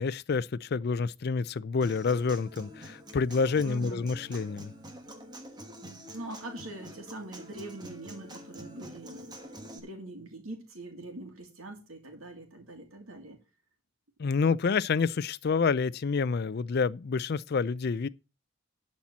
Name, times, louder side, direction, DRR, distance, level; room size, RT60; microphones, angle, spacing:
voice 1, 0.0-4.7 14.2-18.1, left 5 dB, 50° left, 0.4 m, -28 dB
Human voice / Acoustic guitar, 1.8-9.8, equal, 20° right, 1.2 m, -46 dB
voice 2, 3.5-4.0 6.1-9.4 9.7-13.4, right 2 dB, 85° right, 2.2 m, -43 dB
11.5 x 4.3 x 7.2 m
head